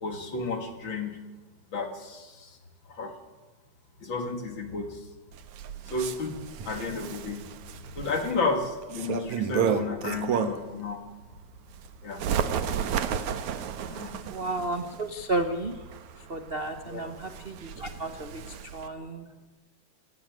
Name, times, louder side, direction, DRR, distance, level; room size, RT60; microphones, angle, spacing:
voice 1, 0.0-1.2 1.7-2.5 3.0-3.2 4.0-5.0 5.9-7.5 8.0-11.0 12.0-12.2 13.9-14.2 16.9-17.0, left 3 dB, 40° left, 6 dB, 3.0 m, -32 dB
Bird, 5.3-10.8 11.2-18.9, right 8 dB, 80° right, 2.7 m, -33 dB
voice 2, 14.3-15.8 16.2-18.4 18.7-19.3, right 2 dB, 50° right, 8 dB, 0.6 m, -32 dB
27.5 x 17.0 x 9.4 m, 1.2 s
omnidirectional pair, 3.4 m